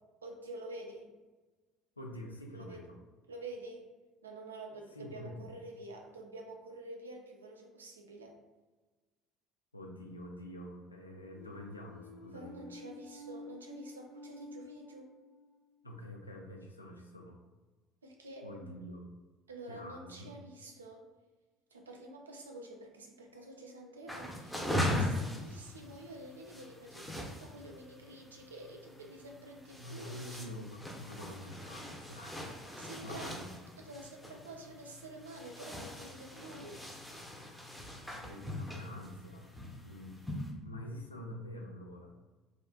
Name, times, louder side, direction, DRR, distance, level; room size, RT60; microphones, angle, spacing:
voice 1, 0.2-1.1 2.5-2.8 3.3-3.9 4.2-8.4 12.3-15.1 18.0-18.8 19.5-21.0 21.7-30.4 32.8-33.4 33.8-36.9, right 2 dB, 80° right, 1 dB, 0.4 m, -48 dB
voice 2, 2.0-3.0 4.9-5.4 9.7-12.6 15.8-17.4 18.4-19.0 19.7-20.4 29.7-33.5 37.9-39.5 39.8-42.1, left 1 dB, 85° left, 1 dB, 0.3 m, -47 dB
sound 1, 11.3-15.6, left 1 dB, 40° left, 0.8 m, -50 dB
sound 2, 24.1-40.5, left 1 dB, ahead, 0.6 m, -40 dB
3.5 x 2.4 x 2.2 m, 1.2 s
figure-of-eight pair, 60°, 0 cm